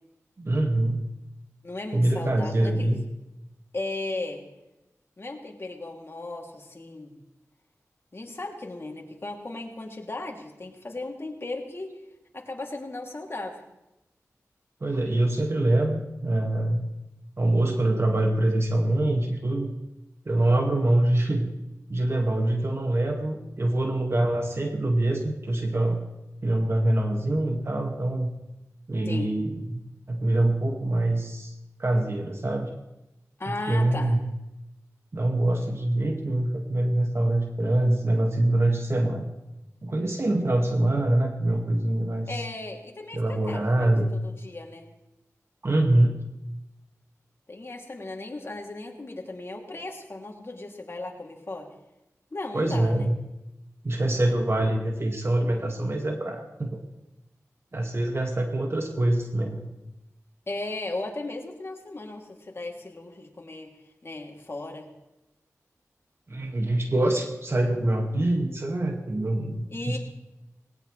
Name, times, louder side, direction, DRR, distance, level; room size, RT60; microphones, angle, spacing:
voice 1, 0.4-1.0 1.9-3.0 14.8-16.9 17.4-19.7 20.3-21.5 21.9-26.0 26.4-28.3 28.9-29.8 30.1-31.5 31.8-32.7 33.7-34.2 35.1-39.3 39.8-42.3 43.1-44.1 45.6-46.2 52.5-53.2 53.8-56.8 57.7-59.7 66.3-70.0, right 1 dB, 50° right, 2 dB, 2.1 m, -24 dB
voice 2, 1.6-2.9 3.7-4.4 5.2-7.1 8.1-12.0 12.3-13.6 29.0-29.3 33.4-34.2 42.3-44.9 47.5-51.7 52.3-53.1 60.5-63.7 64.0-64.9 69.7-70.0, left 2 dB, 45° left, 1 dB, 3.0 m, -36 dB
19.5 x 18.5 x 3.4 m, 0.94 s
cardioid pair, 50°, 6 cm